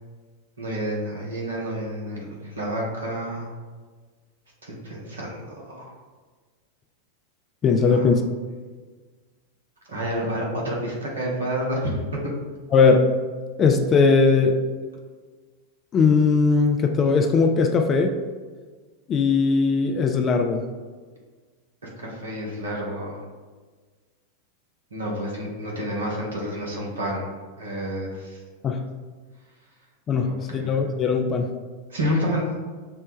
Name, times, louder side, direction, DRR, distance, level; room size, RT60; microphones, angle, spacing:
voice 1, 0.6-3.5 4.6-5.9 7.9-8.1 9.9-12.3 21.8-23.2 24.9-27.3 27.6-28.4 30.2-30.9 31.9-32.5, equal, 70° right, -3 dB, 1.0 m, -29 dB
voice 2, 7.6-8.2 12.7-13.1 13.6-14.6 15.9-18.2 19.1-20.6 28.6-28.8 30.1-31.5, left 4 dB, 25° left, 5 dB, 0.4 m, -19 dB
5.6 x 2.2 x 3.0 m, 1.4 s
figure-of-eight pair, 90°, 0 cm